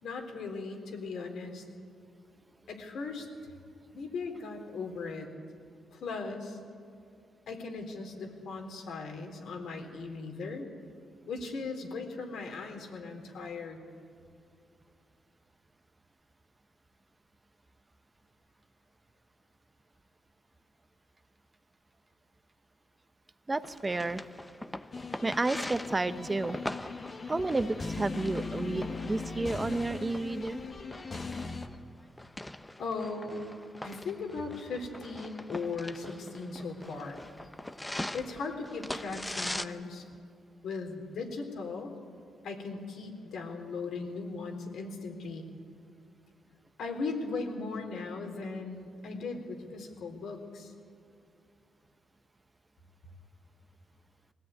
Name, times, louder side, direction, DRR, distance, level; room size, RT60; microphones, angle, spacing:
voice 1, 0.0-1.6 2.7-3.3 3.9-5.3 5.9-6.6 7.5-10.7 11.3-13.8 32.8-33.4 33.8-37.2 38.1-40.0 40.6-41.9 42.4-45.5 46.8-50.7, left 4 dB, 70° left, 3 dB, 3.6 m, -38 dB
voice 2, 23.5-24.2 25.2-26.6 27.3-30.6, right 2 dB, 20° right, 11 dB, 1.0 m, -31 dB
sound 1, 23.6-39.6, left 1 dB, 10° left, 0.9 m, -42 dB
sound 2, 24.9-31.7, left 4 dB, 40° left, 1.5 m, -39 dB
20.5 x 16.0 x 9.3 m, 2.5 s
cardioid pair, 75°, 0 cm